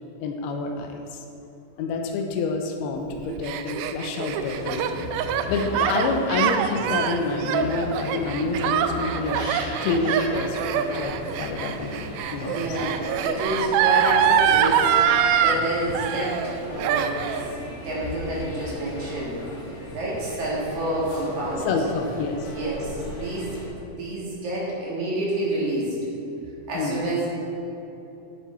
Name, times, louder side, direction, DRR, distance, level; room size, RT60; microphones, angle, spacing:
voice 1, 0.2-1.2 1.8-5.1 5.5-9.4 9.8-12.8 21.7-22.5 26.7-27.1, left 3 dB, 85° left, 3 dB, 2.7 m, -28 dB
Gasp, 3.1-15.6 15.9-16.5 16.8-17.5, right 9 dB, 80° right, 2.3 m, -24 dB
sound 1, 4.3-23.7, equal, 40° left, 1.3 m, -38 dB
voice 2, 12.4-17.4 17.8-19.4 19.9-21.7 22.5-23.6 23.9-26.0 26.7-27.3, right 1 dB, 55° right, -5 dB, 2.9 m, -28 dB
10.5 x 7.2 x 4.4 m, 3.0 s
omnidirectional pair, 4.5 m